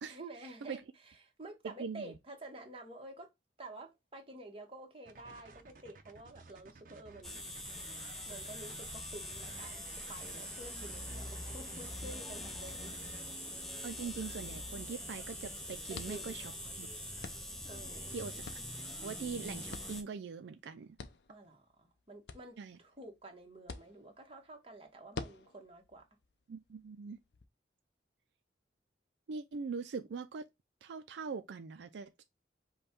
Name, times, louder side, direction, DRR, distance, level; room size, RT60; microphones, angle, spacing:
voice 1, 0.0-3.3 3.6-7.4 8.3-12.9 15.9-16.3 17.7-18.1 21.3-26.1, right 2 dB, 30° right, 1.2 m, -50 dB
voice 2, 1.6-2.1 13.8-16.9 18.1-18.5 19.0-21.0 22.6-22.8 26.5-27.2 29.3-30.5 30.8-32.2, right 5 dB, 85° right, 0.4 m, -42 dB
sound 1, 5.0-13.2, right 3 dB, 50° right, 0.7 m, -55 dB
sound 2, 7.2-20.0, left 1 dB, 5° left, 0.6 m, -43 dB
sound 3, 15.9-27.5, left 4 dB, 75° left, 0.6 m, -52 dB
5.2 x 2.2 x 4.3 m
head